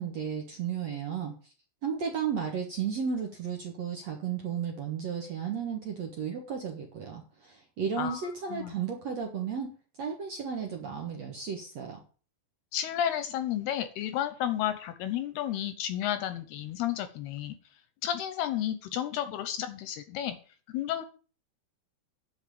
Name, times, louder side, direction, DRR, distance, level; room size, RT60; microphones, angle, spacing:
voice 1, 0.0-1.3 1.8-9.7 10.0-12.0, right 7 dB, 60° right, 1 dB, 1.8 m, -34 dB
voice 2, 8.0-8.8 12.7-17.6 18.0-20.4 20.7-21.1, left 11 dB, 75° left, 11 dB, 2.5 m, -32 dB
10.0 x 5.9 x 8.5 m, 0.39 s
omnidirectional pair, 5.1 m